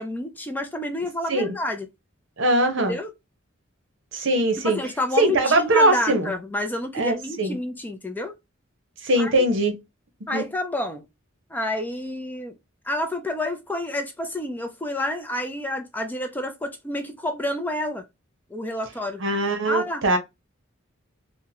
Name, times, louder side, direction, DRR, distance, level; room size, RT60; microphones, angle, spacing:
voice 1, 0.0-1.9 2.9-3.1 4.6-8.3 9.2-9.4 10.3-11.1 11.5-12.5 12.8-18.0 18.5-19.2 19.7-20.2, left 1 dB, 10° left, 0.4 m, -29 dB
voice 2, 2.4-2.9 4.1-4.8 5.2-6.3 6.9-7.6 9.0-9.7 10.3-10.4 19.2-20.2, right 1 dB, 65° right, 0.8 m, -21 dB
3.6 x 2.1 x 2.7 m
head